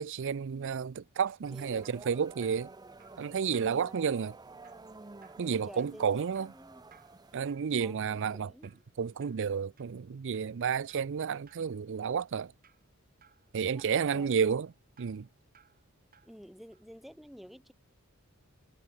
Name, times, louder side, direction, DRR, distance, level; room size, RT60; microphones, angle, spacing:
voice 1, 0.0-2.7 3.2-4.3 5.4-6.5 7.3-8.5 9.0-12.5 13.5-14.7 15.0-15.3, right 6 dB, 60° right, 0.5 m, -31 dB
Drip, 1.0-16.4 16.7-16.9, right 7 dB, 45° right, 4.6 m, -65 dB
sound 1, 1.4-7.4, right 3 dB, 20° right, 0.6 m, -51 dB
voice 2, 3.7-4.2 5.4-6.8 7.8-8.7 13.7-13.8 14.1-14.5 16.2-17.7, equal, ahead, 1.4 m, -51 dB
head